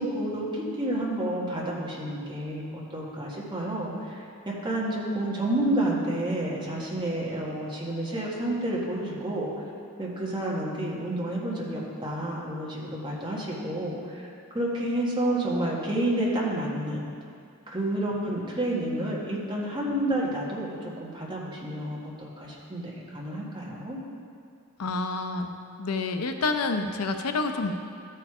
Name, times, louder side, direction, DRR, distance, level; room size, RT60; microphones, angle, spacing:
voice 1, 0.0-9.6 10.0-14.3 14.5-17.1 17.7-24.0, right 1 dB, 20° right, -4 dB, 1.6 m, -30 dB
voice 2, 24.8-25.5 25.8-27.7, left 3 dB, 90° left, 6 dB, 0.6 m, -28 dB
13.0 x 4.6 x 4.9 m, 2.5 s
head